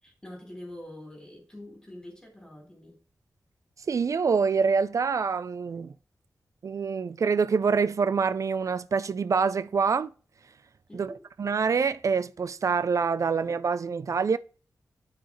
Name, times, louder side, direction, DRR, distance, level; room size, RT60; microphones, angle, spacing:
voice 1, 0.0-3.0 10.9-11.3, left 1 dB, 10° left, 3.7 m, -45 dB
voice 2, 3.9-5.9 6.6-10.1 10.9-11.1 11.4-14.4, right 5 dB, 60° right, 0.4 m, -26 dB
10.0 x 4.8 x 3.1 m
wide cardioid pair, 105°, 6 cm